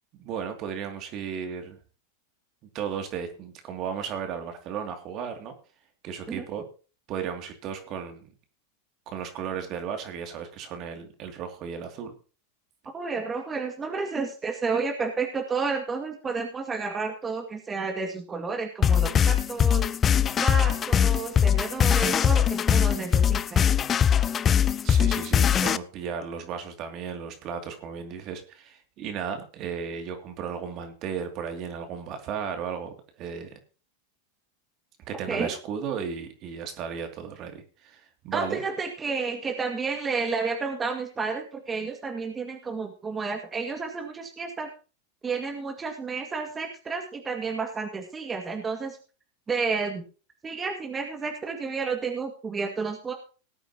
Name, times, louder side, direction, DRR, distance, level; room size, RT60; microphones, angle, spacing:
voice 1, 0.1-1.8 2.7-5.5 6.0-6.6 7.1-8.3 9.1-12.1 24.5-33.5 35.1-38.6, right 7 dB, 45° right, 5 dB, 2.6 m, -35 dB
voice 2, 12.9-19.8 20.4-23.6 35.3-35.5 38.3-44.7 45.2-49.0 49.5-50.0 50.4-53.1, right 4 dB, 20° right, 3 dB, 2.0 m, -31 dB
sound 1, 18.8-25.8, left 8 dB, 25° left, 0.5 m, -21 dB
19.0 x 8.9 x 2.9 m, 0.35 s
hypercardioid pair, 110°, 0 cm